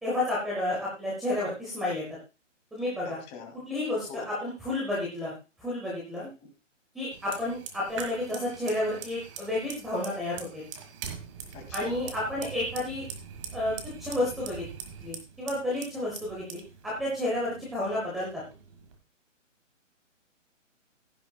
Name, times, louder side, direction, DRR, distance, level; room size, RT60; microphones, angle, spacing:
voice 1, 0.0-2.0 2.7-3.2 3.7-5.3 5.6-6.2 6.9-10.6 11.7-13.0 13.5-13.7 14.0-14.6 15.0-18.4, left 1 dB, ahead, -5 dB, 0.6 m, -31 dB
voice 2, 3.3-3.6 4.1-4.3 6.2-6.5 11.5-12.0, left 5 dB, 15° left, 3 dB, 2.1 m, -44 dB
Fire, 7.1-19.0, right 7 dB, 25° right, 1.5 m, -43 dB
15.5 x 10.0 x 2.2 m, 0.30 s
hypercardioid pair, 160°, 38 cm